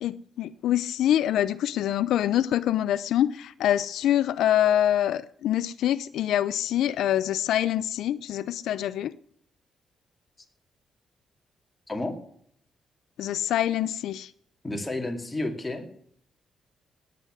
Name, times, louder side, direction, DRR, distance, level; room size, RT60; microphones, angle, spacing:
voice 1, 0.0-9.1 13.2-14.3, left 11 dB, 85° left, 0.5 m, -25 dB
voice 2, 14.6-16.0, left 2 dB, 15° left, 2.4 m, -31 dB
18.0 x 8.6 x 6.3 m
cardioid pair, 140°, 0 cm